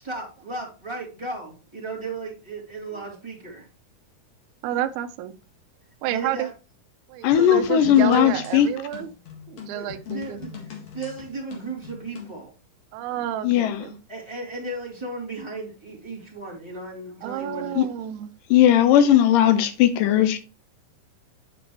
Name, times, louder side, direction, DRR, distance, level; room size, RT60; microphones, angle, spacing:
voice 1, 0.0-3.7 6.1-6.5 9.7-12.5 14.1-17.9, right 2 dB, 10° right, 2.4 m, -35 dB
voice 2, 4.6-5.3 6.0-6.5 7.1-9.1 9.5-10.4 12.9-14.0 17.2-18.3, right 11 dB, 85° right, 1.7 m, -30 dB
voice 3, 7.2-8.7 13.4-13.8 17.8-17.9 18.5-20.4, left 10 dB, 80° left, 2.2 m, -17 dB
sound 1, 7.3-12.4, left 7 dB, 50° left, 2.6 m, -40 dB
9.6 x 5.1 x 3.1 m
omnidirectional pair, 4.1 m